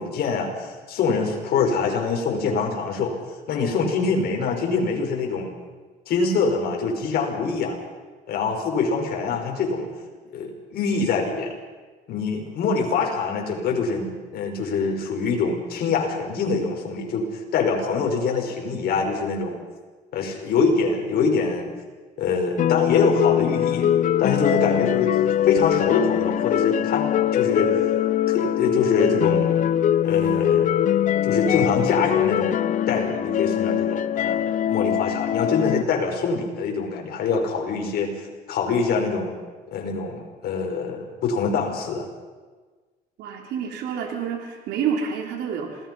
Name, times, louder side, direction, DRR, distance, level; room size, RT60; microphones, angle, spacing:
voice 1, 0.0-3.1 3.5-5.5 6.1-7.8 8.3-9.9 10.3-11.5 12.1-19.6 20.1-21.7 22.2-23.9 24.2-27.8 28.3-29.6 30.0-30.7 31.2-32.6 32.9-38.1 38.5-39.4 39.7-42.1, left 4 dB, 65° left, 1 dB, 5.7 m, -24 dB
sound 1, 22.6-35.8, left 10 dB, 50° left, 0.6 m, -22 dB
voice 2, 43.2-45.9, right 7 dB, 80° right, 2 dB, 3.8 m, -28 dB
27.5 x 19.5 x 5.6 m, 1.4 s
cardioid pair, 110°, 17 cm